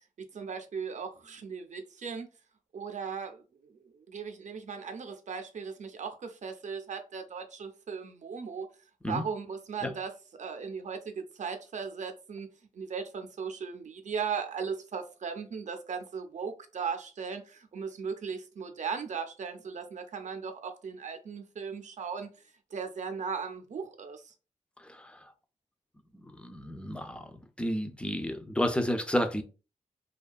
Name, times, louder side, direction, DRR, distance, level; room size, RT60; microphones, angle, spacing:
voice 1, 0.3-2.3 2.7-3.4 4.0-8.7 9.1-10.1 10.4-12.5 12.8-22.3 22.7-24.2, right 6 dB, 65° right, 0.5 m, -37 dB
voice 2, 24.8-25.3 26.1-29.4, equal, 10° left, 0.3 m, -32 dB
2.5 x 2.2 x 2.3 m
wide cardioid pair, 115°, 13 cm